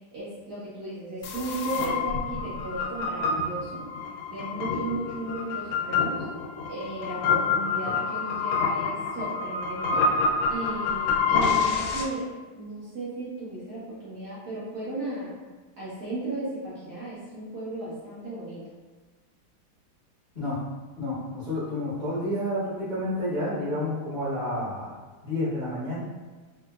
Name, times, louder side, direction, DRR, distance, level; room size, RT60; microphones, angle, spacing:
voice 1, 0.1-3.8 4.3-6.2 6.7-10.1 10.5-12.3 12.6-15.3 15.8-18.6, right 2 dB, 55° right, -10 dB, 1.2 m, -35 dB
sound 1, 1.2-12.0, left 4 dB, 80° left, 1.4 m, -27 dB
voice 2, 21.0-25.0 25.2-26.0, left 1 dB, 35° left, -14 dB, 0.8 m, -30 dB
3.8 x 2.5 x 2.3 m, 1.3 s
omnidirectional pair, 2.4 m